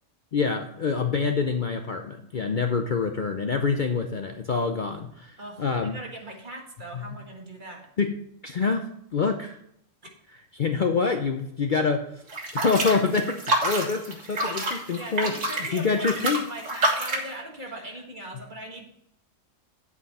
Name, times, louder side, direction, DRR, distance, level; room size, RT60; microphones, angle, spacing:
voice 1, 0.3-6.0 6.9-7.0 8.0-8.2 8.4-9.6 10.6-12.1 12.5-15.4 15.7-16.5, left 5 dB, 50° left, 5 dB, 0.7 m, -26 dB
voice 2, 2.3-2.8 5.4-7.9 10.0-10.1 15.0-18.9, right 1 dB, 40° right, 0 dB, 1.8 m, -40 dB
sound 1, 12.3-17.3, right 2 dB, 75° right, 2.1 m, -28 dB
9.7 x 8.1 x 4.2 m, 0.72 s
omnidirectional pair, 1.3 m